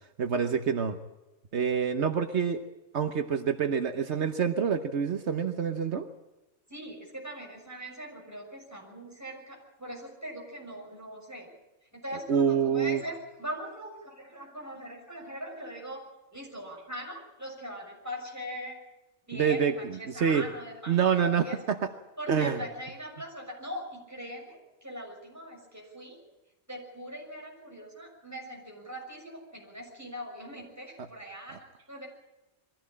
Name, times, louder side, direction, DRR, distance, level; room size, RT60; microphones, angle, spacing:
voice 1, 0.2-1.0 1.5-2.6 2.9-6.1 12.3-13.0 19.3-20.4 20.9-21.9 22.3-22.6, right 7 dB, 70° right, 7 dB, 1.3 m, -27 dB
voice 2, 6.7-11.5 11.9-16.0 16.3-18.8 19.3-21.6 22.2-26.2 26.7-32.1, equal, 15° right, -1 dB, 6.4 m, -41 dB
22.5 x 15.5 x 8.7 m, 1.0 s
omnidirectional pair, 1.2 m